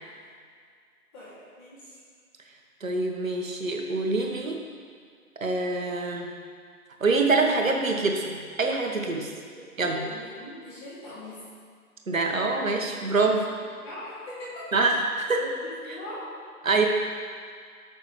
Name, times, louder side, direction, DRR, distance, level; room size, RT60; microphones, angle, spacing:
voice 1, 1.1-2.0 9.5-11.3 13.8-14.8 15.4-16.2, left 1 dB, 15° left, -10 dB, 3.1 m, -41 dB
voice 2, 2.8-4.6 5.4-6.3 7.0-9.3 9.8-10.0 12.1-13.4 14.7-15.4 16.6-16.9, right 3 dB, 60° right, 2 dB, 1.7 m, -25 dB
19.0 x 6.5 x 3.4 m, 2.1 s
figure-of-eight pair, 155°, 46 cm